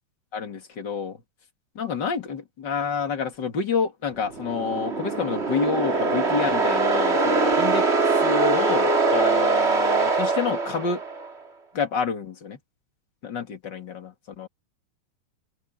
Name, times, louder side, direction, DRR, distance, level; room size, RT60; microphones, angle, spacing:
voice 1, 0.3-1.2 1.7-11.0 11.7-12.6 13.2-14.5, left 6 dB, 35° left, 2.4 m, -29 dB
sound 1, 4.3-11.3, right 3 dB, 25° right, 1.6 m, -22 dB
open air
omnidirectional pair, 4.1 m